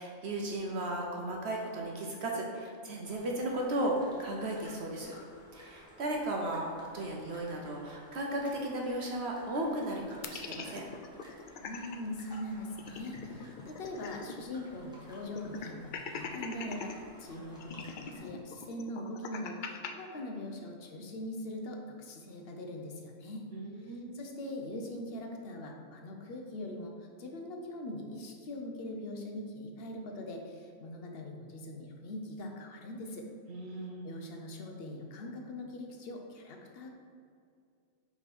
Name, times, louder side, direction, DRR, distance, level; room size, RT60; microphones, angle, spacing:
voice 1, 0.0-5.2 5.5-6.7 6.9-10.8 23.5-24.3 33.5-34.1, right 1 dB, 60° right, -1 dB, 0.9 m, -35 dB
sound 1, 3.0-18.3, equal, 5° right, 1.0 m, -55 dB
sound 2, 10.2-12.0 12.3-12.4 12.7-14.5 14.8-14.9 15.4-16.9 17.6-19.9, left 5 dB, 90° left, 0.4 m, -42 dB
voice 2, 11.6-16.9 17.2-23.4 23.8-33.3 34.0-36.9, left 1 dB, 50° left, 2 dB, 0.9 m, -42 dB
5.1 x 4.9 x 4.2 m, 2.4 s
omnidirectional pair, 1.4 m